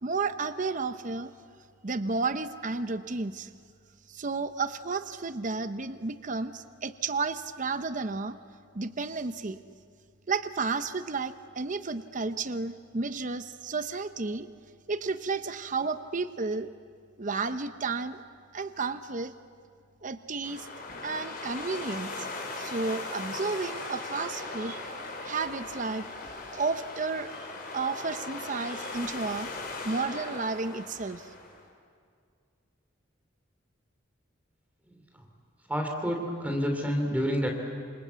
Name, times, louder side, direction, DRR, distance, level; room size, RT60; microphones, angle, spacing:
voice 1, 0.0-1.3 1.8-3.5 4.1-8.4 8.7-9.6 10.3-14.5 14.9-16.7 17.2-18.2 18.5-19.3 20.0-20.7 21.0-22.3 22.6-24.8 25.2-26.1 26.5-27.5 27.7-29.5 29.8-31.3, right 4 dB, 40° right, 11 dB, 0.8 m, -32 dB
sound 1, 20.4-31.6, left 3 dB, 50° left, 4.8 m, -39 dB
voice 2, 35.7-37.5, equal, 10° right, 2 dB, 2.9 m, -29 dB
27.0 x 27.0 x 8.2 m, 2.2 s
head